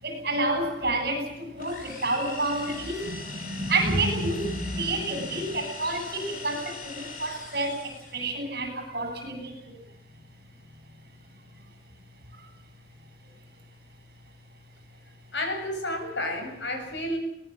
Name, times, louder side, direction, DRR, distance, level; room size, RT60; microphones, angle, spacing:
voice 1, 0.0-9.8 12.3-12.5, right 2 dB, 55° right, 6 dB, 7.9 m, -29 dB
sound 1, 1.6-8.3, left 4 dB, 50° left, 5.9 m, -41 dB
voice 2, 15.3-17.2, left 1 dB, 85° left, 5 dB, 7.1 m, -31 dB
23.0 x 20.0 x 7.8 m, 0.83 s
head